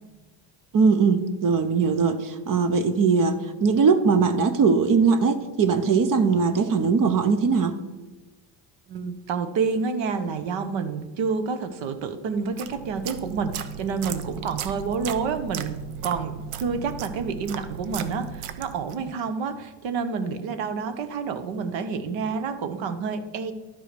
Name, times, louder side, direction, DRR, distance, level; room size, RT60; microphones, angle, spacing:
voice 1, 0.7-7.8, right 5 dB, 40° right, 11 dB, 0.9 m, -20 dB
voice 2, 8.9-23.5, right 5 dB, 60° right, 10 dB, 1.2 m, -29 dB
sound 1, 12.4-19.1, right 8 dB, 75° right, 0.9 m, -36 dB
11.5 x 4.9 x 6.8 m, 1.2 s
supercardioid pair, 100°, 50 cm